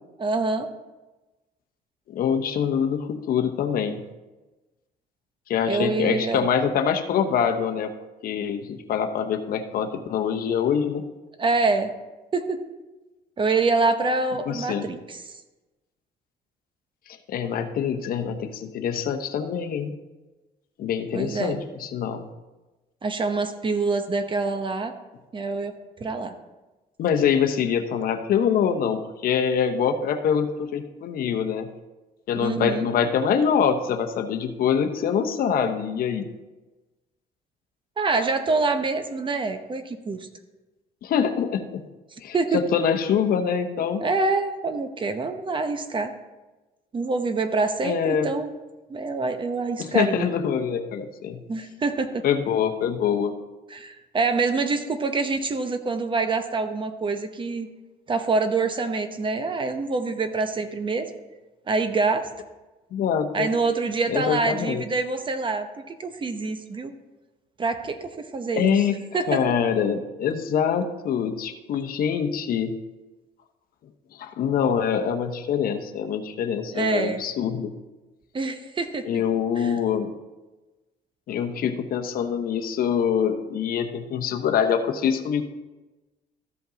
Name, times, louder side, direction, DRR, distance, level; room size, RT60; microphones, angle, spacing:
voice 1, 0.2-0.7 5.7-6.4 11.4-11.9 12.3-12.6 13.4-15.2 21.1-21.6 23.0-24.9 25.3-26.3 32.4-32.9 38.0-40.3 42.3-42.6 44.0-46.1 46.9-48.5 48.9-50.3 51.5-52.2 53.7-57.7 58.1-61.1 61.7-62.3 63.3-66.9 67.6-68.7 69.1-69.4 76.7-77.2 78.3-79.2 79.6-79.7, right 3 dB, 30° right, 8 dB, 0.8 m, -26 dB
voice 2, 2.1-4.0 5.5-7.9 8.2-11.0 14.5-14.9 17.1-19.9 20.8-22.3 27.0-31.7 32.3-36.3 41.0-41.8 42.2-44.0 47.8-48.3 49.8-51.4 52.2-53.3 62.9-63.5 64.1-64.8 68.5-69.0 69.3-72.7 74.1-77.7 79.1-80.1 81.3-85.4, left 7 dB, 60° left, 6 dB, 0.9 m, -24 dB
14.0 x 5.2 x 3.9 m, 1.1 s
cardioid pair, 110°, 17 cm